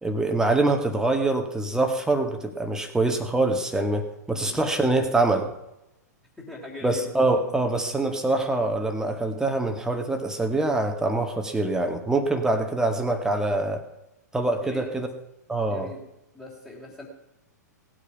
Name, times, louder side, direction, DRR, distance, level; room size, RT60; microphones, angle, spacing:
voice 1, 0.0-5.5 6.8-13.8 14.3-15.1 15.5-15.9, right 2 dB, 5° right, 5 dB, 1.8 m, -24 dB
voice 2, 6.4-7.9 12.5-12.6 14.6-14.9 15.7-16.0 16.3-17.1, left 2 dB, 10° left, -5 dB, 3.4 m, -41 dB
18.0 x 8.6 x 5.9 m, 0.90 s
figure-of-eight pair, 105°, 10 cm